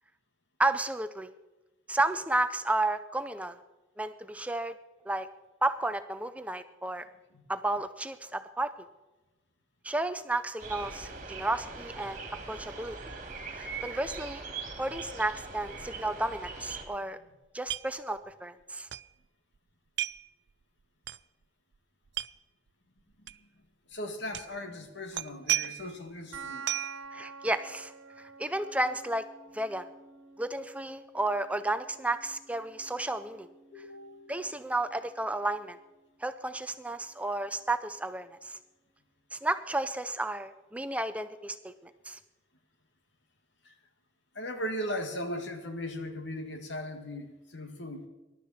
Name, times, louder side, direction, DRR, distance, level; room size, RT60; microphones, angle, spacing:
voice 1, 0.6-1.3 1.9-3.6 4.0-4.7 5.1-5.3 5.6-7.0 7.5-8.7 9.8-13.0 13.5-14.4 14.8-17.2 17.5-18.9 27.1-27.9 28.2-29.3 29.5-29.9 30.4-33.5 34.3-35.8 36.2-38.6 39.3-42.2, right 2 dB, 5° right, 10 dB, 0.5 m, -32 dB
sound 1, 10.6-16.8, right 4 dB, 40° right, 2.6 m, -41 dB
sound 2, 17.7-17.9 18.2-18.3 18.9-19.1 20.0-20.3 21.1-21.2 22.1-22.3 23.3-23.4 24.3-24.6 25.1-25.9 26.7-27.0, right 14 dB, 60° right, 0.4 m, -33 dB
voice 2, 23.2-23.5 23.9-26.9 33.7-34.4 43.6-43.7 44.3-48.1, equal, 65° left, 6 dB, 2.0 m, -38 dB
sound 3, 26.3-37.3, right 4 dB, 85° right, 1.4 m, -50 dB
20.5 x 12.0 x 4.3 m, 1.1 s
head